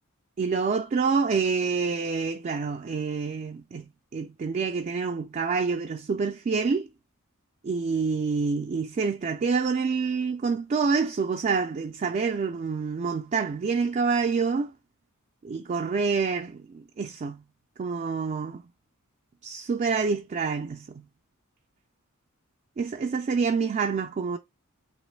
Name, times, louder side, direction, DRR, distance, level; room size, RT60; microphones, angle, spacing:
voice 1, 0.4-6.9 7.6-14.7 15.4-17.4 17.8-18.6 19.4-21.0 22.8-24.4, right 5 dB, 35° right, 0.3 m, -27 dB
3.0 x 3.0 x 3.2 m
head